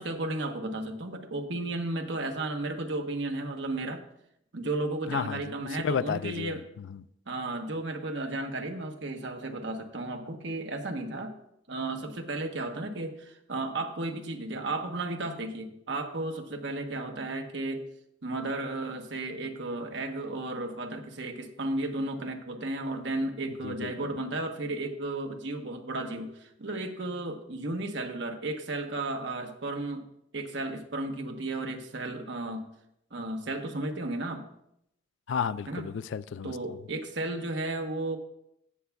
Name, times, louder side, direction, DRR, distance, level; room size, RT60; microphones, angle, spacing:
voice 1, 0.0-4.0 4.5-6.6 7.3-11.3 11.7-17.8 18.2-30.0 30.3-32.7 33.1-34.5 35.7-35.9 36.4-38.2, right 2 dB, 70° right, 1.1 m, -34 dB
voice 2, 5.1-5.4 5.8-7.0 23.6-23.9 35.3-36.8, left 7 dB, 80° left, 0.4 m, -32 dB
17.0 x 6.9 x 2.3 m
head